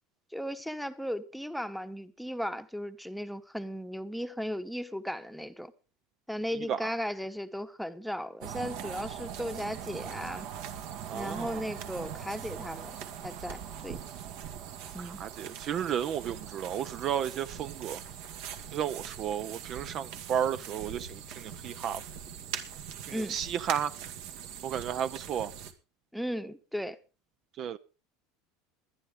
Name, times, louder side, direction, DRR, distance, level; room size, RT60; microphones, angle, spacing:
voice 1, 0.3-5.7 6.3-10.5 11.1-12.9 13.2-14.0 14.9-15.2 23.1-23.4 26.1-27.0, equal, ahead, 1.0 m, -36 dB
sound 1, 8.4-25.7, right 8 dB, 70° right, 2.2 m, -41 dB
voice 2, 11.1-11.6 15.0-18.0 18.7-22.0 23.1-23.9 24.6-25.5 27.6-27.8, right 9 dB, 40° right, 0.6 m, -33 dB
22.0 x 10.5 x 3.8 m
supercardioid pair, 130°, 0 cm